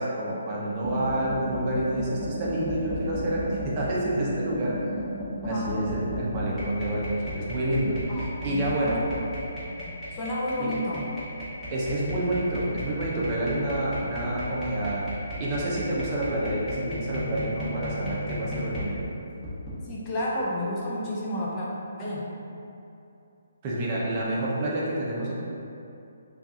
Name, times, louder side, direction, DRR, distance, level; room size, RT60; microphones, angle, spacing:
voice 1, 0.0-4.8 5.4-9.0 10.6-10.7 11.7-15.1 15.4-19.1 23.6-25.3, right 1 dB, 30° right, -5 dB, 0.7 m, -28 dB
sound 1, 0.8-18.9 19.4-19.7, equal, ahead, 1.1 m, -35 dB
voice 2, 5.4-5.8 8.1-9.1 9.8-11.1 19.8-21.7 22.0-22.3, left 1 dB, 25° left, -6 dB, 0.5 m, -31 dB
4.4 x 2.4 x 2.7 m, 2.7 s
hypercardioid pair, 150°, 0 cm